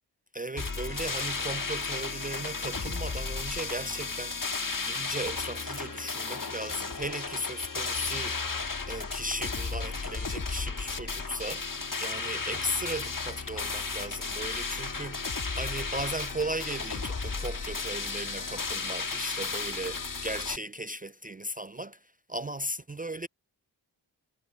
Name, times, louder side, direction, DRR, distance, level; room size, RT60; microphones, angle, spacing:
voice 1, 0.3-4.4 4.9-8.4 8.9-23.3, right 1 dB, 20° right, 0.3 m, -36 dB
sound 1, 0.6-20.6, left 4 dB, 50° left, 1.6 m, -34 dB
cardioid pair, 40°, 43 cm